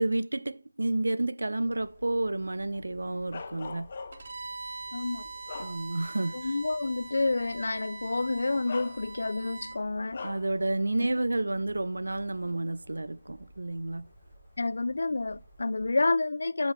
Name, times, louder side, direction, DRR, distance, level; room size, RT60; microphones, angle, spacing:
voice 1, 0.0-3.9 5.6-6.5 10.2-14.1, right 2 dB, 65° right, 0.6 m, -30 dB
sound 1, 1.7-16.0, equal, 10° left, 3.4 m, -55 dB
Bark, 3.3-4.4 5.0-6.2 6.7-6.8 8.0-8.1 8.7-9.4 10.1-10.6, left 4 dB, 35° left, 0.7 m, -41 dB
Bowed string instrument, 4.1-9.8, right 3 dB, 40° right, 1.3 m, -43 dB
voice 2, 4.9-5.3 6.3-10.3 14.6-16.7, left 3 dB, 55° left, 0.3 m, -29 dB
12.5 x 5.3 x 3.3 m
figure-of-eight pair, 160°, 0 cm